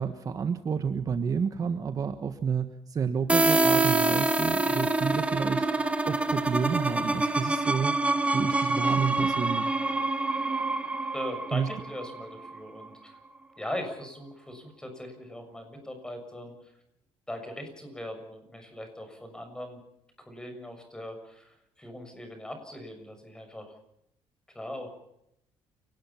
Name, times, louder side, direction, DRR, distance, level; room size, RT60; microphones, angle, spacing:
voice 1, 0.0-5.7 6.1-7.9 8.3-9.8 11.5-11.7, right 6 dB, 35° right, 9 dB, 1.4 m, -30 dB
sound 1, 3.3-12.9, right 2 dB, 10° right, 1.9 m, -26 dB
voice 2, 11.1-13.2 13.6-16.5 17.3-19.8 20.2-23.7 24.5-24.9, left 1 dB, 5° left, 6 dB, 6.7 m, -40 dB
29.5 x 19.0 x 5.8 m, 0.76 s
cardioid pair, 140°, 10 cm